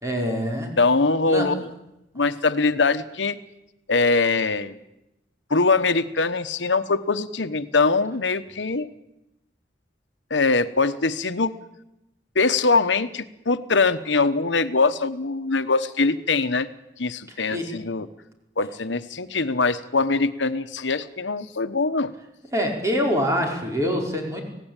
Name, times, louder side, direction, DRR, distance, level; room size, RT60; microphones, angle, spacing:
voice 1, 0.0-0.7 1.3-1.5 17.3-17.7 22.5-24.4, equal, 15° right, 0 dB, 5.1 m, -25 dB
voice 2, 0.8-1.7 2.1-3.4 3.9-4.8 5.5-8.9 10.3-11.5 12.3-16.7 17.0-18.1 18.6-22.1, left 3 dB, 90° left, 11 dB, 1.2 m, -22 dB
26.0 x 17.5 x 9.0 m, 0.89 s
head